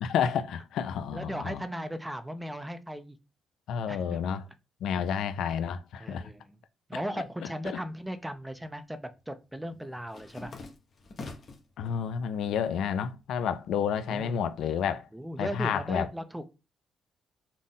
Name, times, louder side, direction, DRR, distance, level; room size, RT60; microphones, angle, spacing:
voice 1, 0.0-1.6 3.7-4.5 4.8-6.3 7.6-7.8 11.8-15.0 15.4-16.1, left 7 dB, 75° left, 0.3 m, -30 dB
voice 2, 1.1-3.2 3.9-4.2 6.0-6.5 6.9-10.5 14.1-14.4 15.1-16.4, equal, 5° right, 0.4 m, -37 dB
sound 1, 7.8-8.6 8.9-11.7 12.2-12.8 13.1-14.8, left 3 dB, 50° left, 0.9 m, -47 dB
3.9 x 2.0 x 3.7 m
cardioid pair, 90°, 0 cm